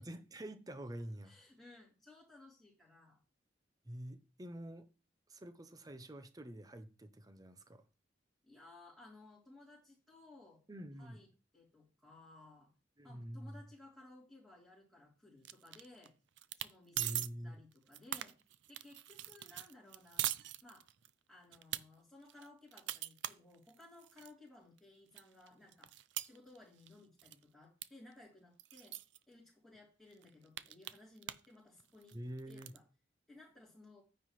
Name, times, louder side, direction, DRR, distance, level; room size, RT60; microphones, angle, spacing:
voice 1, 0.0-1.3 3.8-4.9 5.3-7.8 10.7-11.2 13.0-13.6 17.0-17.6 32.1-32.7, equal, 20° right, 0.7 m, -47 dB
voice 2, 1.2-3.2 8.4-10.6 11.0-11.3 11.5-12.7 13.0-16.1 16.6-18.4 18.7-20.3 20.6-20.9 21.3-29.0 29.3-32.2 32.5-32.8 33.3-34.0, left 2 dB, ahead, 3.5 m, -59 dB
sound 1, 15.4-16.1 16.4-16.7 17.0-17.3 17.7-21.1 21.5-21.8 22.3-24.3 24.8-24.9 25.2-26.9 27.2-27.4 27.8-27.9 28.1-28.2 28.6-29.2 29.7-29.8 30.1-31.5 31.8-32.8, right 13 dB, 70° right, 0.5 m, -42 dB
9.6 x 9.4 x 3.2 m
head